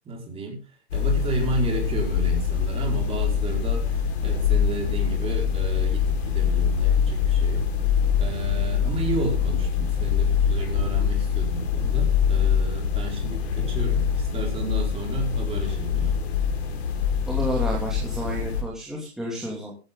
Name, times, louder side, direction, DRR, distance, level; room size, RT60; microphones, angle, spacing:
voice 1, 0.0-0.6 0.9-7.7 8.2-16.2, right 3 dB, 15° right, 0 dB, 4.8 m, -32 dB
sound 1, 0.9-18.6, left 7 dB, 70° left, 4.8 m, -24 dB
voice 2, 17.3-19.7, equal, ahead, -4 dB, 2.7 m, -31 dB
15.0 x 12.0 x 3.8 m, 0.33 s
hypercardioid pair, 150°, 34 cm